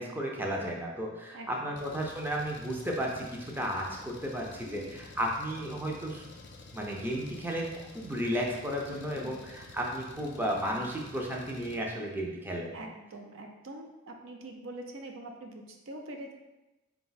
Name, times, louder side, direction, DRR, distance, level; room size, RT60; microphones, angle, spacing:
voice 1, 0.0-6.2 6.7-12.7, equal, 10° right, -1 dB, 0.4 m, -34 dB
voice 2, 1.3-1.8 4.6-4.9 8.9-9.5 12.7-16.3, right 1 dB, 70° right, 3 dB, 0.5 m, -44 dB
Engine, 1.8-11.8, left 3 dB, 60° left, 0.4 m, -50 dB
3.8 x 2.3 x 3.9 m, 1.0 s
head